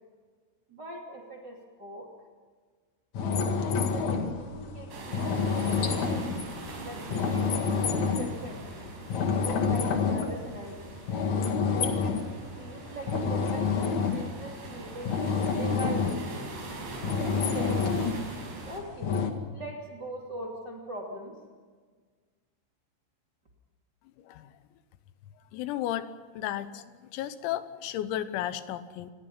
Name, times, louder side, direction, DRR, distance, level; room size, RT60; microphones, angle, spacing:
voice 1, 0.7-2.1 3.3-6.0 6.8-8.7 9.3-11.0 11.7-15.2 15.6-16.4 17.2-18.1 18.7-19.2 19.5-21.4, right 1 dB, 30° right, -1 dB, 2.4 m, -41 dB
sound 1, 3.1-8.4 8.9-10.8 11.1-12.3 12.7-16.3 16.8-18.3 19.0-19.3, left 5 dB, 55° left, 2.1 m, -28 dB
sound 2, 4.9-18.8, right 2 dB, 50° right, 7.4 m, -42 dB
voice 2, 25.5-26.9 27.1-29.1, left 12 dB, 85° left, 12 dB, 3.8 m, -33 dB
27.5 x 21.5 x 5.7 m, 1.5 s
omnidirectional pair, 6.0 m